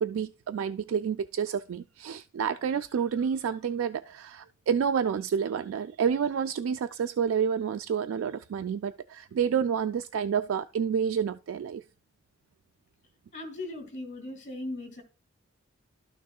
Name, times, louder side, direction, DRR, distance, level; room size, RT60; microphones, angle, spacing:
voice 1, 0.0-11.8, right 7 dB, 70° right, 0.3 m, -29 dB
voice 2, 13.3-15.0, left 2 dB, 40° left, 2.5 m, -38 dB
12.5 x 6.4 x 2.3 m
head